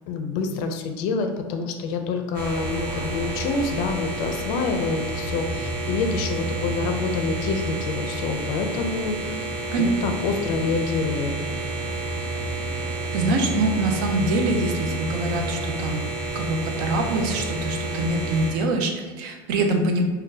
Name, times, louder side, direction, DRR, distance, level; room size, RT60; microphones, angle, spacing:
voice 1, 0.1-11.4, left 4 dB, 55° left, 5 dB, 0.4 m, -27 dB
sound 1, 2.3-18.5, right 2 dB, 85° right, 1.0 m, -30 dB
voice 2, 13.1-16.0 16.3-20.0, right 2 dB, 65° right, 4 dB, 0.6 m, -24 dB
3.7 x 2.2 x 2.7 m, 1.3 s
supercardioid pair, 155°, 11 cm